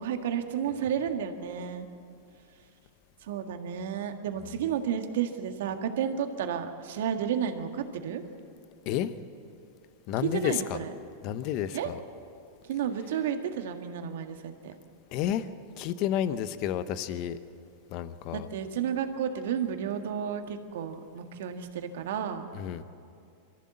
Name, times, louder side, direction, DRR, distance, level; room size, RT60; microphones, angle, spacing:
voice 1, 0.0-1.9 3.2-8.2 10.2-10.9 11.7-11.9 12.6-14.7 18.3-22.5, right 8 dB, 70° right, 6 dB, 1.7 m, -32 dB
voice 2, 10.1-10.8 11.2-12.0 15.1-15.5 15.8-17.4 17.9-18.5 22.5-22.8, left 10 dB, 50° left, 12 dB, 1.0 m, -30 dB
23.0 x 14.5 x 7.8 m, 2.5 s
hypercardioid pair, 115°, 0 cm